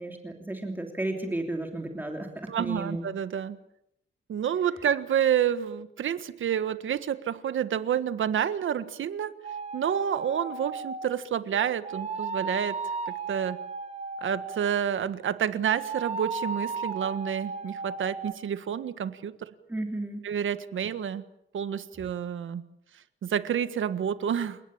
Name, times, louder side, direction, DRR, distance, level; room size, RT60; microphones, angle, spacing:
voice 1, 0.0-3.0 19.7-20.3, right 1 dB, 10° right, 2 dB, 3.0 m, -33 dB
voice 2, 2.5-3.6 4.3-9.3 9.7-12.8 13.1-13.6 14.2-19.5 20.2-21.2 21.5-22.6 23.2-24.6, right 9 dB, 70° right, 12 dB, 1.6 m, -29 dB
sound 1, 9.4-11.2 11.8-14.7 15.7-18.3, right 4 dB, 30° right, 2.1 m, -35 dB
29.5 x 18.5 x 8.8 m, 0.77 s
wide cardioid pair, 175°, 21 cm